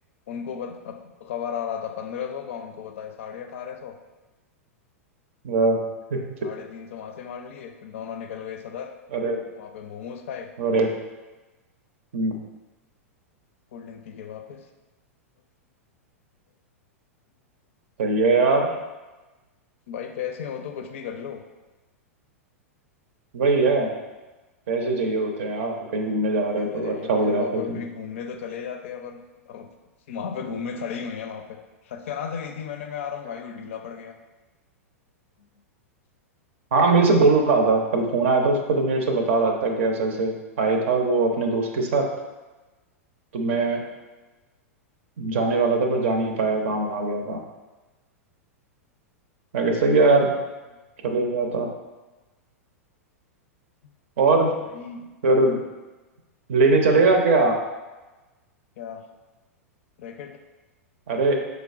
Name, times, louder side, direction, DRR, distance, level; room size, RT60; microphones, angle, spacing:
voice 1, 0.3-3.9 6.4-9.0 9.6-10.5 13.7-14.7 19.9-21.4 26.5-29.7 30.1-31.6 31.8-34.2 35.4-35.5 54.6-55.1 58.8-59.1 60.0-60.4, left 7 dB, 60° left, 5 dB, 0.4 m, -35 dB
voice 2, 5.4-5.8 6.1-6.3 9.1-9.4 10.6-10.9 12.1-12.3 18.0-18.7 23.3-23.9 24.7-27.8 36.7-42.1 43.3-43.8 45.2-47.4 49.5-50.3 51.0-51.7 54.2-54.5 55.2-55.6 56.5-57.6 61.1-61.4, right 3 dB, 60° right, 3 dB, 0.6 m, -21 dB
5.0 x 3.3 x 2.4 m, 1.2 s
figure-of-eight pair, 95°, 8 cm